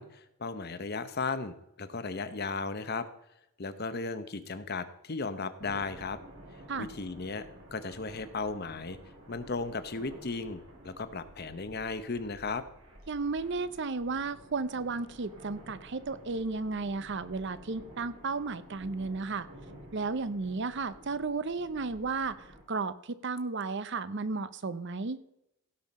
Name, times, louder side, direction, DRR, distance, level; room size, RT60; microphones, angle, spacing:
voice 1, 0.0-3.1 3.6-6.2 6.8-9.0 9.3-12.6, left 4 dB, 45° left, 12 dB, 0.8 m, -36 dB
sound 1, 5.6-22.6, equal, 80° right, 4.2 m, -52 dB
voice 2, 13.1-19.5 19.9-25.2, right 4 dB, 55° right, 15 dB, 0.6 m, -34 dB
16.5 x 5.7 x 5.3 m, 0.83 s
head